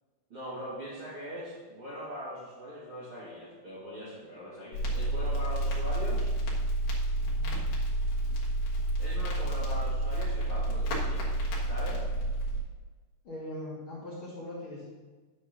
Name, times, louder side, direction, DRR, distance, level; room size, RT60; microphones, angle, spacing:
voice 1, 0.3-6.3 9.0-11.3 11.6-12.0, equal, 40° right, -9 dB, 2.5 m, -41 dB
Crackle, 4.7-12.6, right 1 dB, 60° left, 2.7 m, -29 dB
voice 2, 7.2-7.6 13.2-14.9, left 1 dB, 40° left, -8 dB, 2.5 m, -41 dB
9.7 x 4.6 x 5.8 m, 1.3 s
omnidirectional pair, 4.5 m